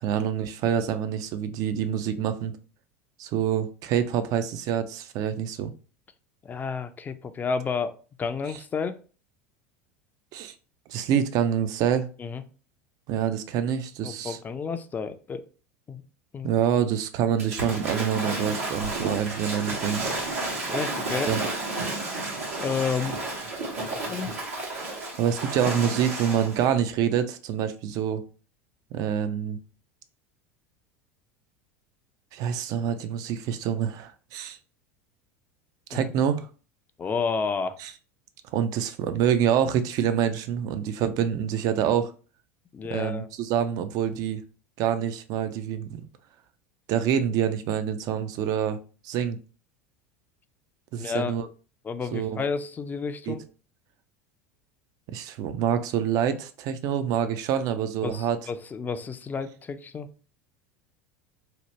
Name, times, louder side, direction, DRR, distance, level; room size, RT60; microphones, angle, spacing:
voice 1, 0.0-2.5 3.2-5.7 10.3-10.5 10.9-12.1 13.1-14.4 16.4-20.1 21.3-21.4 25.2-28.2 28.9-29.6 32.3-34.6 35.9-36.5 37.8-37.9 38.5-42.1 42.9-44.4 44.8-46.0 46.9-48.8 49.0-49.4 50.9-51.5 52.1-52.4 53.3-53.4 55.1-58.4, right 9 dB, 50° right, 0.4 m, -26 dB
voice 2, 6.4-9.0 12.2-12.4 14.0-15.5 15.9-16.0 16.3-16.5 20.6-21.3 22.6-23.2 24.1-24.3 35.9-36.1 37.0-37.8 42.7-43.3 51.0-51.3 51.8-53.4 58.0-60.1, left 5 dB, 25° left, 0.4 m, -31 dB
Waves surf / Splash splatter, 17.4-26.7, right 2 dB, 85° right, 1.2 m, -31 dB
2.9 x 2.1 x 3.1 m
hypercardioid pair, 85°, 8 cm